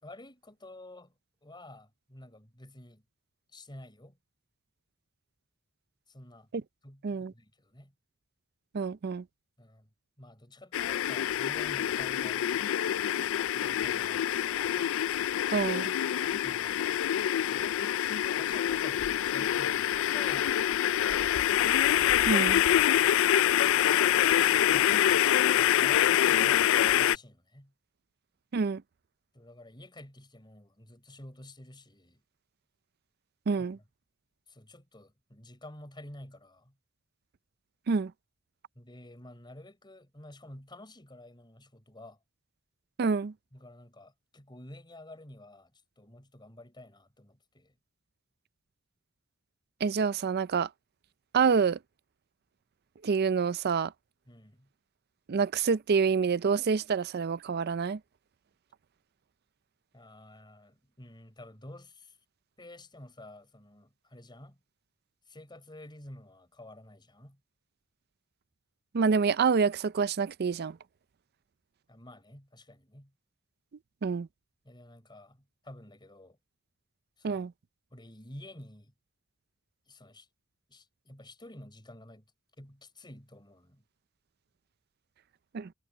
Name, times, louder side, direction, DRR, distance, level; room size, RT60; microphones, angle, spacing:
voice 1, 0.0-1.1 1.4-3.0 3.5-4.2 6.1-6.5 6.8-7.9 9.6-9.9 10.2-12.7 13.4-14.7 16.3-16.8 17.5-17.8 18.3-20.8 24.4-25.0 25.4-27.7 29.3-32.2 33.6-33.7 34.5-36.7 38.7-42.2 43.5-47.7 54.3-54.7 59.9-62.2 62.6-64.6 65.3-67.4 71.9-73.1 74.6-76.4 77.2-77.4 77.9-78.9 79.9-80.3 80.7-82.3 82.6-83.8, left 1 dB, 20° left, 4.9 m, -50 dB
voice 2, 8.7-9.2 15.5-15.9 22.3-22.6 28.5-28.8 33.5-33.8 37.9-38.1 43.0-43.3 49.8-50.7 51.3-51.8 53.0-53.9 55.3-58.0 68.9-70.8 74.0-74.3 77.2-77.5 85.5-85.7, right 5 dB, 50° right, 0.4 m, -27 dB
sound 1, 10.7-27.2, left 11 dB, 65° left, 0.3 m, -26 dB
head